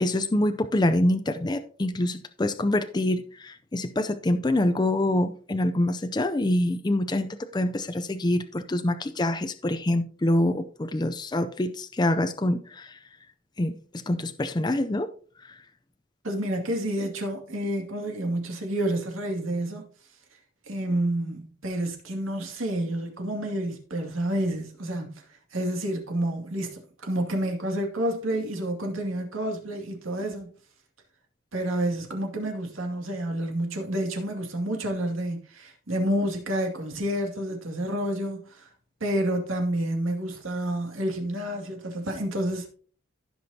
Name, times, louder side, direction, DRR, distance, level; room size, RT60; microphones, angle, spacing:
voice 1, 0.0-12.9 13.6-13.7 14.1-15.1, left 1 dB, 20° left, 0.4 m, -25 dB
voice 2, 16.2-19.9 20.7-25.2 25.5-30.5 31.5-38.7 39.0-42.7, right 1 dB, 80° right, 2.3 m, -29 dB
15.5 x 6.1 x 2.8 m
head